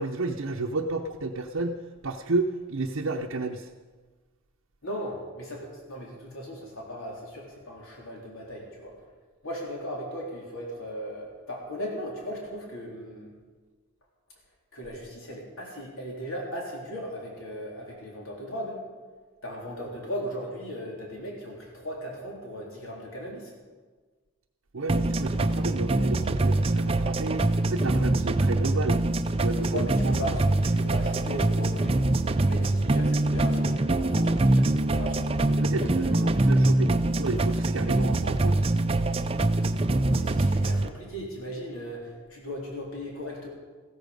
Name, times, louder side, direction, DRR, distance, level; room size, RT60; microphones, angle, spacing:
voice 1, 0.0-3.7 24.7-29.0 29.4-30.3 35.5-36.9 37.2-38.6, right 3 dB, 70° right, 1 dB, 0.7 m, -31 dB
voice 2, 4.8-8.9 9.4-13.3 14.7-18.8 19.4-23.5 29.7-30.3 30.6-32.0 32.4-35.2 35.7-36.2 40.1-43.5, equal, 75° left, -2 dB, 3.8 m, -37 dB
sound 1, 24.9-40.9, right 2 dB, 25° right, 0.5 m, -24 dB
15.0 x 13.5 x 5.3 m, 1.4 s
head